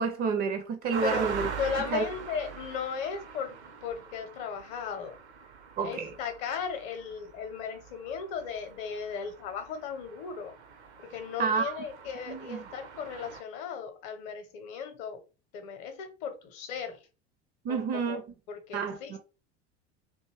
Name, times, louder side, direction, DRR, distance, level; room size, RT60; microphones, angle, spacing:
voice 1, 0.0-1.5 1.9-2.0 5.8-6.1 11.4-11.8 12.3-12.6 17.6-18.2 18.7-19.2, right 5 dB, 30° right, 0.4 m, -29 dB
sound 1, 0.9-13.4, right 6 dB, 75° right, 0.6 m, -43 dB
voice 2, 1.6-5.2 5.8-10.5 11.0-15.2 15.5-17.0 17.7-18.2 18.5-19.2, left 6 dB, 45° left, 0.8 m, -36 dB
2.6 x 2.3 x 3.0 m
figure-of-eight pair, 75°, 34 cm